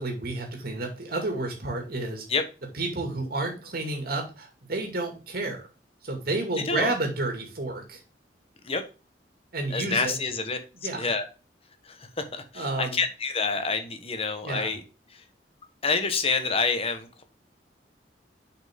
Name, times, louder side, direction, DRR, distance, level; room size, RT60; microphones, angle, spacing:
voice 1, 0.0-2.3 2.7-5.6 6.0-8.0 9.5-10.2 10.8-11.1 12.5-13.0 14.4-14.7, right 2 dB, 60° right, 2.1 m, -30 dB
voice 2, 6.6-6.9 8.6-8.8 9.7-10.6 10.9-11.3 11.8-14.8 15.1-15.2 15.8-17.2, left 4 dB, 35° left, 1.2 m, -28 dB
7.3 x 5.5 x 3.6 m
head